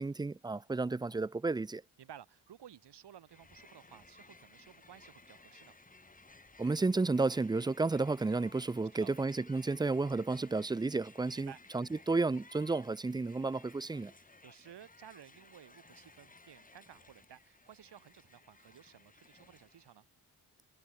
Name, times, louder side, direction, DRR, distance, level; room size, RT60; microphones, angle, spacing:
voice 1, 0.0-1.8 6.6-14.1, right 3 dB, 10° right, 0.4 m, -32 dB
voice 2, 2.0-5.7 9.0-9.1 11.3-11.6 14.2-20.1, right 9 dB, 80° right, 6.8 m, -55 dB
Crowd, 3.3-20.0, left 3 dB, 20° left, 3.4 m, -59 dB
cardioid pair, 115°, 40 cm